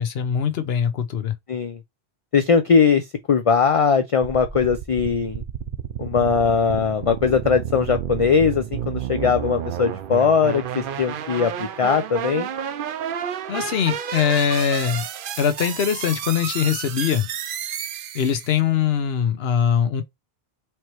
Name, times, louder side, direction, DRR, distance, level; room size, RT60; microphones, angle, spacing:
voice 1, 0.0-1.3 13.5-15.0 15.4-17.3 18.1-20.0, left 8 dB, 70° left, 0.9 m, -22 dB
voice 2, 2.3-5.4 6.0-12.5, left 6 dB, 50° left, 0.4 m, -20 dB
sound 1, 4.2-18.6, right 9 dB, 60° right, 0.7 m, -31 dB
4.5 x 3.0 x 3.0 m
omnidirectional pair, 1.1 m